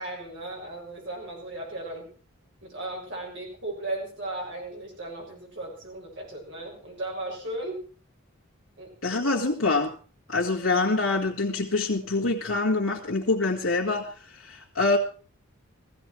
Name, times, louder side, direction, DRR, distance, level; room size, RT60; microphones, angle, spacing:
voice 1, 0.0-2.1 2.6-7.8 8.8-8.9, right 2 dB, 55° right, 6.7 m, -36 dB
voice 2, 9.0-9.9 10.3-15.0, left 3 dB, 70° left, 2.0 m, -25 dB
15.5 x 15.5 x 4.6 m
head